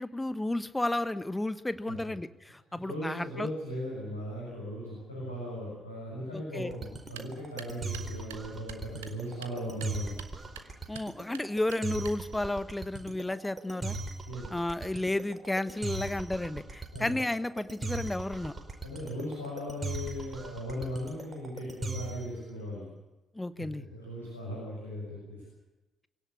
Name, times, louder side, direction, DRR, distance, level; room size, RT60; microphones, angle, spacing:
voice 1, 0.0-3.5 6.3-6.7 10.9-14.0 14.5-18.5 23.3-23.8, left 1 dB, 10° left, 14 dB, 1.2 m, -32 dB
voice 2, 2.7-10.2 14.2-14.5 16.9-17.1 18.8-22.9 23.6-23.7 23.9-25.4, equal, 85° left, -5 dB, 6.6 m, -38 dB
sound 1, 6.7-22.3, right 3 dB, 30° right, 4.9 m, -39 dB
sound 2, 7.0-12.5, right 10 dB, 75° right, 1.2 m, -50 dB
24.0 x 17.0 x 8.4 m, 1.1 s
figure-of-eight pair, 45°, 0 cm